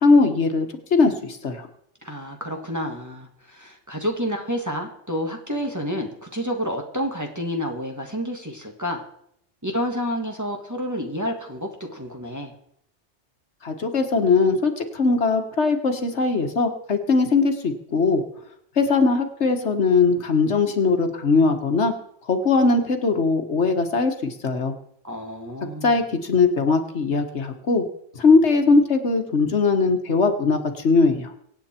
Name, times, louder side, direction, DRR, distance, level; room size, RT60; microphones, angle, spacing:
voice 1, 0.0-1.7 13.6-18.2 18.8-21.9 22.3-24.7 25.8-27.8 28.2-31.3, left 4 dB, 75° left, 6 dB, 1.7 m, -20 dB
voice 2, 2.0-9.0 9.6-12.5 25.0-26.0, equal, 15° right, 2 dB, 1.7 m, -29 dB
24.0 x 8.7 x 4.4 m, 0.71 s
omnidirectional pair, 1.2 m